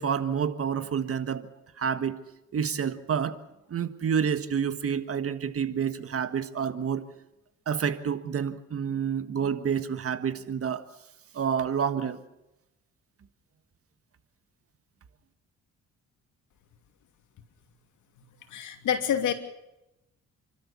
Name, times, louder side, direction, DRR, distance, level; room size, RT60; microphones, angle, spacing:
voice 1, 0.0-1.5 1.8-2.2 2.5-3.4 3.7-7.0 7.7-10.8 11.3-12.2, right 7 dB, 50° right, 10 dB, 1.6 m, -28 dB
voice 2, 18.5-19.3, left 9 dB, 75° left, 6 dB, 2.8 m, -27 dB
29.5 x 13.0 x 7.2 m, 0.91 s
cardioid pair, 90°, 30 cm